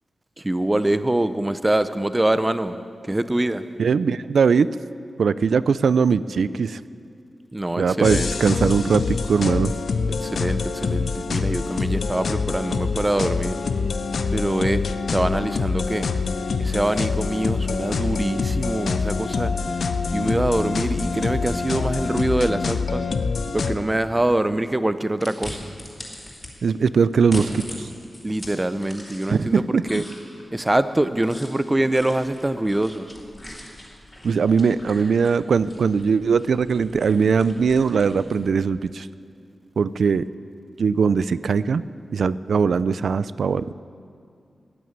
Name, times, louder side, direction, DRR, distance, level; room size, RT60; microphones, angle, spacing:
voice 1, 0.4-2.8 3.1-3.6 7.5-8.3 10.2-13.6 14.3-16.1 16.6-19.5 20.1-23.0 23.5-25.6 28.2-30.0 30.5-33.1, right 1 dB, 15° right, 12 dB, 0.6 m, -24 dB
voice 2, 3.8-4.7 5.2-6.8 7.8-9.7 26.6-27.9 29.3-29.8 34.2-39.1 39.8-40.2 40.8-41.8 42.1-43.7, right 5 dB, 80° right, 16 dB, 0.4 m, -20 dB
sound 1, 8.0-23.8, left 4 dB, 75° left, 0.6 m, -25 dB
sound 2, 25.2-26.5 27.1-29.5 29.8-38.4, left 1 dB, 25° left, 3.1 m, -40 dB
14.0 x 9.4 x 8.8 m, 2.4 s
wide cardioid pair, 105°, 0 cm